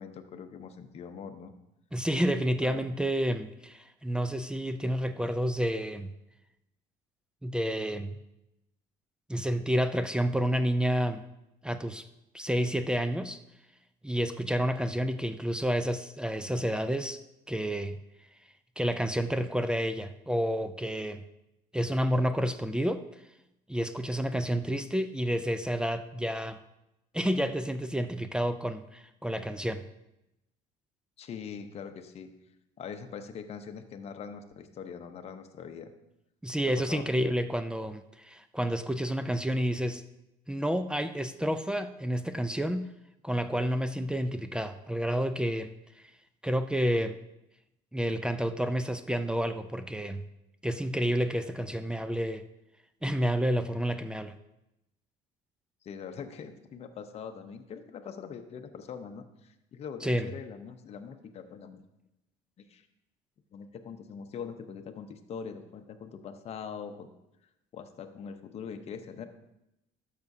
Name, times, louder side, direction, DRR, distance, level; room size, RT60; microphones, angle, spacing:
voice 1, 0.0-1.5 2.6-2.9 31.2-32.3 32.8-35.9 36.8-37.1 55.8-61.8 62.6-62.9 63.5-67.1 67.7-69.3, left 6 dB, 40° left, 7 dB, 0.8 m, -42 dB
voice 2, 1.9-6.1 7.4-8.2 9.3-11.2 11.6-12.1 12.3-13.4 14.0-17.2 17.5-18.0 18.8-21.2 21.7-23.1 23.7-26.6 27.1-29.9 36.4-40.0 40.5-42.9 43.2-46.1 46.4-47.2 47.9-50.2 50.6-52.4 53.0-54.4 60.0-60.3, equal, 5° right, 10 dB, 0.4 m, -30 dB
12.0 x 6.7 x 2.7 m, 0.89 s
cardioid pair, 110°, 16 cm